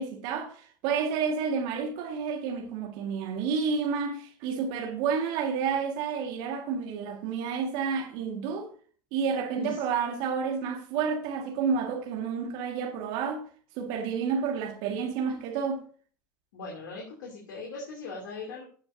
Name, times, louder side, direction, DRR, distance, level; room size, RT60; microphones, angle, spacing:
voice 1, 0.0-8.7 9.1-13.4 13.8-15.8, right 6 dB, 60° right, 1.9 m, -30 dB
voice 2, 16.5-18.6, left 3 dB, 75° left, 2.9 m, -39 dB
15.5 x 6.6 x 2.7 m
hypercardioid pair, 90°, 11 cm